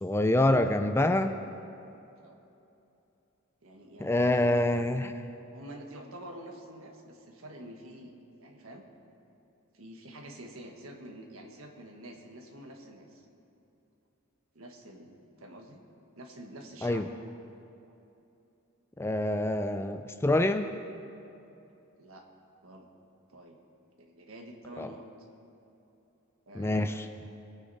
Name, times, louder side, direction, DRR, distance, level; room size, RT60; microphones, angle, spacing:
voice 1, 0.0-1.3 4.0-5.1 16.8-17.1 19.0-20.8 24.8-24.9 26.5-27.1, left 1 dB, 10° left, 9 dB, 0.3 m, -26 dB
voice 2, 3.6-4.7 5.5-8.1 8.4-8.9 9.7-13.2 14.5-15.8 16.2-17.2 17.8-18.0 22.0-22.2 22.6-22.9 23.3-23.6 24.0-25.0 26.5-27.1, right 1 dB, 80° right, 3 dB, 1.5 m, -47 dB
20.5 x 8.8 x 4.2 m, 2.8 s
head